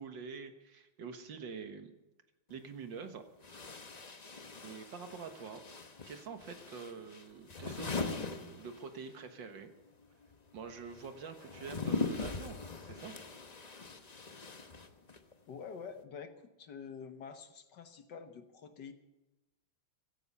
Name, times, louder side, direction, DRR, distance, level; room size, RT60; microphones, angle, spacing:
voice 1, 0.0-1.9 2.5-3.2 4.6-5.6 6.1-9.7 10.5-13.1, right 5 dB, 65° right, 7 dB, 2.0 m, -46 dB
sound 1, 2.5-2.6 3.4-9.2 9.5-15.3, left 4 dB, 35° left, 0.6 m, -41 dB
voice 2, 15.5-16.3 16.6-18.9, left 6 dB, 60° left, 8 dB, 1.6 m, -47 dB
15.5 x 15.0 x 5.5 m, 1.0 s
omnidirectional pair, 2.3 m